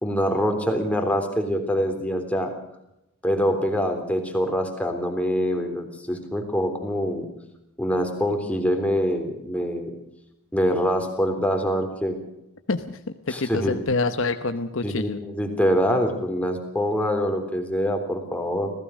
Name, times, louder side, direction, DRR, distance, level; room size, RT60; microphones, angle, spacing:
voice 1, 0.0-2.5 3.2-7.3 7.8-9.9 10.5-12.2 13.3-13.8 14.8-18.7, equal, 5° left, 4 dB, 3.4 m, -25 dB
voice 2, 12.7-13.0 13.3-15.2, left 3 dB, 60° left, 8 dB, 1.0 m, -26 dB
26.5 x 16.5 x 6.4 m, 0.84 s
head